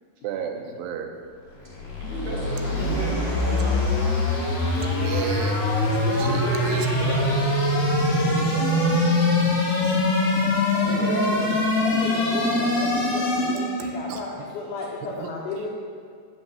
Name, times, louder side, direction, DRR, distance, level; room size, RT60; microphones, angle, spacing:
voice 1, 0.2-1.1 4.8-5.6 5.9-7.2 8.2-8.9 9.8-10.0 13.8-14.2 15.2-15.3, right 7 dB, 80° right, 4 dB, 2.8 m, -34 dB
sound 1, 1.6-13.8, left 2 dB, 45° left, 2.7 m, -23 dB
voice 2, 2.0-3.8 6.1-7.4 10.8-11.2, right 3 dB, 60° right, -4 dB, 2.6 m, -34 dB
voice 3, 2.6-3.3 8.3-9.8 10.7-15.7, left 3 dB, 85° left, -3 dB, 1.8 m, -34 dB
7.7 x 6.4 x 6.6 m, 2.1 s
omnidirectional pair, 4.8 m